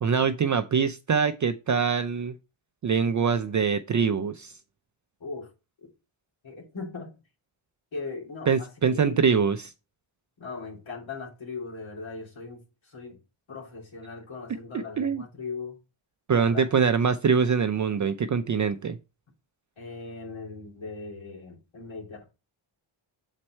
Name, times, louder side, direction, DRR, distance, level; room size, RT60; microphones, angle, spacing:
voice 1, 0.0-2.3 2.8-4.5 8.5-9.7 14.7-15.2 16.3-19.0, right 6 dB, 40° right, 0.5 m, -24 dB
voice 2, 6.4-7.1 7.9-9.4 10.4-13.2 13.5-15.7 16.3-16.6 19.8-22.3, left 4 dB, 65° left, 3.1 m, -39 dB
7.4 x 4.4 x 4.3 m
cardioid pair, 90°, 49 cm